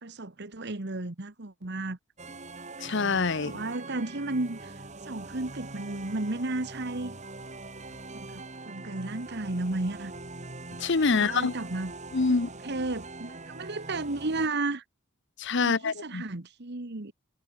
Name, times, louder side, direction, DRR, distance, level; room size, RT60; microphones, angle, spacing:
voice 1, 0.0-2.0 3.4-4.7 5.0-7.1 8.1-10.1 11.1-11.9 12.6-14.8 15.6-17.1, right 2 dB, 50° right, 1.4 m, -33 dB
sound 1, 2.2-14.5, right 3 dB, 35° right, 2.9 m, -43 dB
voice 2, 2.8-3.5 10.8-11.5 12.1-12.5 15.4-16.2, left 4 dB, 55° left, 0.9 m, -25 dB
head